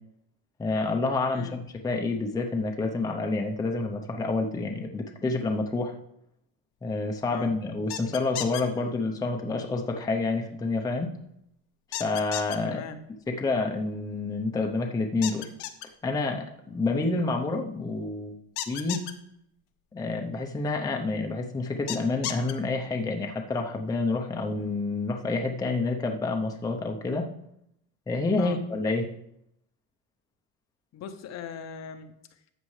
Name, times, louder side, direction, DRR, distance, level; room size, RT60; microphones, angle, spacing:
voice 1, 0.6-5.9 6.8-11.1 12.0-12.8 13.3-15.5 16.0-18.4 18.7-19.1 19.9-27.3 28.1-29.1, left 3 dB, 10° left, 2 dB, 0.6 m, -28 dB
sound 1, 7.9-8.6 11.9-12.6 15.2-15.9 18.6-19.1 21.9-22.5, left 12 dB, 70° left, 1.1 m, -33 dB
voice 2, 12.6-13.0 28.4-28.6 30.9-32.5, left 7 dB, 40° left, 9 dB, 0.8 m, -40 dB
13.0 x 7.4 x 3.2 m, 0.76 s
cardioid pair, 150°, 42 cm